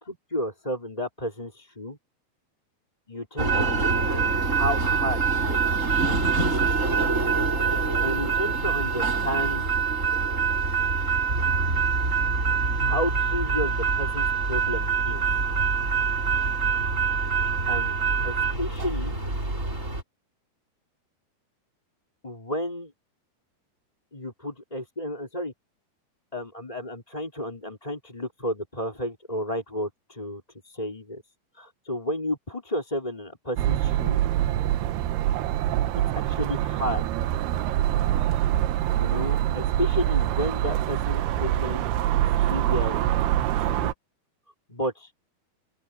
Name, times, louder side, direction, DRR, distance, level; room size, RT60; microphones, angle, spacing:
voice 1, 0.0-2.0 3.1-5.2 5.5-5.6 8.0-9.7 12.8-15.3 17.7-17.9 18.2-19.2 22.2-22.9 24.1-25.5 26.3-31.2 31.6-34.2 36.2-37.1 39.0-41.8 42.3-43.0 43.6-43.9 44.7-45.1, equal, 10° left, 4.3 m, -32 dB
sound 1, 3.4-20.0, right 5 dB, 20° right, 5.1 m, -25 dB
sound 2, 33.6-43.9, right 12 dB, 80° right, 2.9 m, -25 dB
open air
omnidirectional pair, 4.6 m